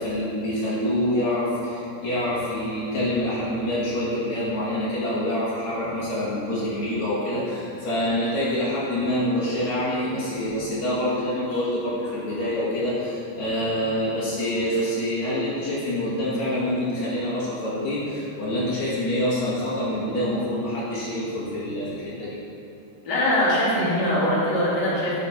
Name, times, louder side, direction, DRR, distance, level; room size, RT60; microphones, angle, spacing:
voice 1, 0.0-22.4, left 1 dB, 70° left, -9 dB, 3.3 m, -26 dB
voice 2, 23.0-25.2, left 1 dB, 35° left, -9 dB, 2.8 m, -22 dB
10.5 x 7.1 x 4.4 m, 2.7 s
omnidirectional pair, 3.4 m